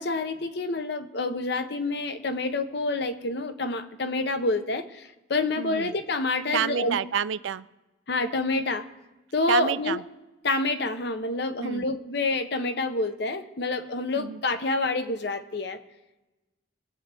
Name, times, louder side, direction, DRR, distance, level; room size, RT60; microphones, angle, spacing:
voice 1, 0.0-7.0 8.1-8.9 9.3-10.0 10.4-15.8, left 2 dB, 60° left, 9 dB, 0.8 m, -28 dB
voice 2, 5.6-5.9 6.5-7.7 9.5-10.0 11.6-11.9 14.2-14.4, right 8 dB, 75° right, 16 dB, 0.4 m, -28 dB
22.5 x 8.1 x 3.4 m, 1.1 s
head